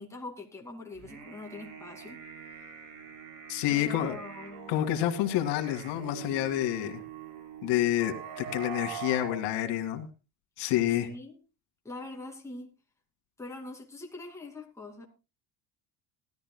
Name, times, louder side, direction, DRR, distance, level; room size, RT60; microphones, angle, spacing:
voice 1, 0.0-2.2 3.7-4.8 10.9-11.4 11.8-12.7 13.4-15.1, left 2 dB, 5° left, 2.5 m, -43 dB
sound 1, 0.9-9.4, right 8 dB, 80° right, 4.0 m, -43 dB
voice 2, 3.5-4.2 4.7-7.0 7.6-10.1 10.6-11.1, left 12 dB, 80° left, 2.3 m, -28 dB
19.0 x 13.0 x 2.2 m
cardioid pair, 145°, 40 cm